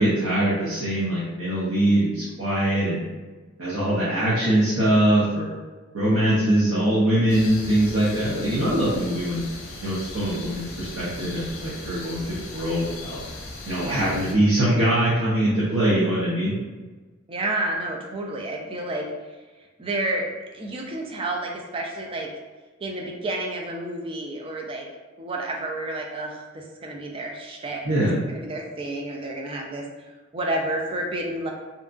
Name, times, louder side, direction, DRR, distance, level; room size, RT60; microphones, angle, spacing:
voice 1, 0.0-3.1 3.6-5.6 5.9-9.4 9.8-13.2 13.6-16.5 27.8-28.2, right 1 dB, 85° right, -9 dB, 0.7 m, -22 dB
sound 1, 7.3-14.3, left 2 dB, 75° left, 0.6 m, -38 dB
voice 2, 10.2-10.5 13.8-14.1 17.3-19.1 19.8-22.3 22.8-24.9 25.2-31.5, right 1 dB, 25° right, 0 dB, 0.4 m, -30 dB
2.8 x 2.3 x 2.5 m, 1.3 s
head